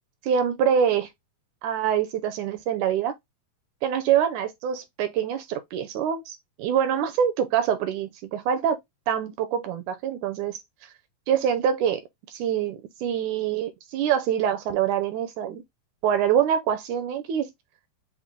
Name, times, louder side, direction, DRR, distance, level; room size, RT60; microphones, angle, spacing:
voice 1, 0.2-1.1 1.6-3.1 3.8-8.8 9.1-10.9 11.3-12.0 12.3-15.6 16.0-17.5, right 8 dB, 80° right, 1.8 m, -25 dB
5.8 x 2.1 x 3.6 m
omnidirectional pair, 3.9 m